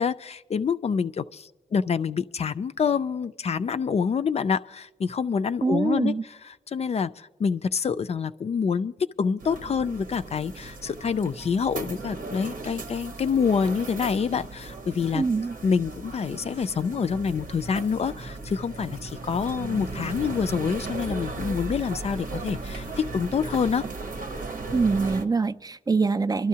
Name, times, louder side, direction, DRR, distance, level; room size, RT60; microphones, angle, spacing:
voice 1, 0.0-6.1 6.5-8.9 9.2-15.2 15.6-23.8, left 6 dB, 50° left, 12 dB, 0.4 m, -27 dB
voice 2, 5.6-6.2 15.1-15.6 24.7-26.5, right 4 dB, 25° right, 10 dB, 0.3 m, -24 dB
sound 1, 9.4-25.2, right 3 dB, 80° right, 0.9 m, -36 dB
25.0 x 12.0 x 2.8 m, 1.1 s
cardioid pair, 75°, 14 cm